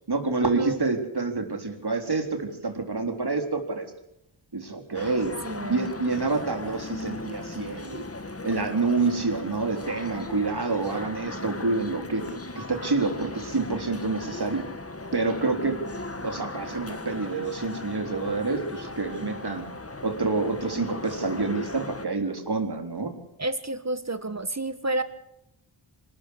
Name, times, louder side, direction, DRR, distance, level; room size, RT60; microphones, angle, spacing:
voice 1, 0.1-3.9 4.5-8.1 8.4-14.7 15.1-15.8 16.2-19.7 20.0-23.1, right 3 dB, 50° right, 5 dB, 3.9 m, -28 dB
sound 1, 4.9-22.1, left 2 dB, 30° left, 1.5 m, -38 dB
voice 2, 5.4-5.9 23.4-25.0, right 2 dB, 35° right, 11 dB, 1.5 m, -30 dB
26.0 x 13.0 x 8.4 m, 0.80 s
wide cardioid pair, 75°, 48 cm